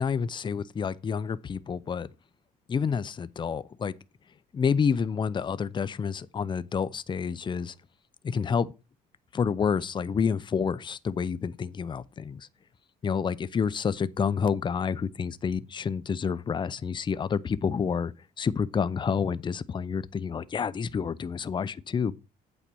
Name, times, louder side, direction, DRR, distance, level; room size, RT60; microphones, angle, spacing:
voice 1, 0.0-2.1 2.7-3.9 4.5-7.7 8.2-8.7 9.3-12.5 13.0-22.2, left 6 dB, 30° left, 0.6 m, -29 dB
8.6 x 4.3 x 6.9 m
cardioid pair, 110°, 17 cm